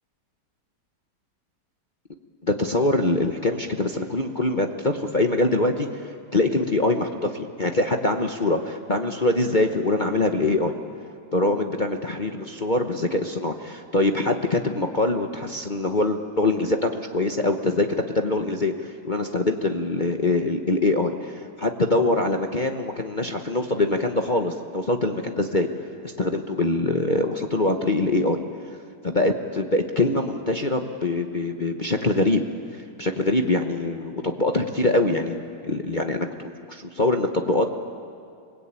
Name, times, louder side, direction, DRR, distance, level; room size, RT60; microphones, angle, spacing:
voice 1, 2.4-5.9 6.3-10.8 11.3-17.9 18.1-25.7 26.0-28.4 29.0-32.4 33.0-37.7, left 2 dB, 30° left, 3 dB, 1.0 m, -24 dB
30.0 x 20.0 x 8.9 m, 2.4 s
omnidirectional pair, 1.9 m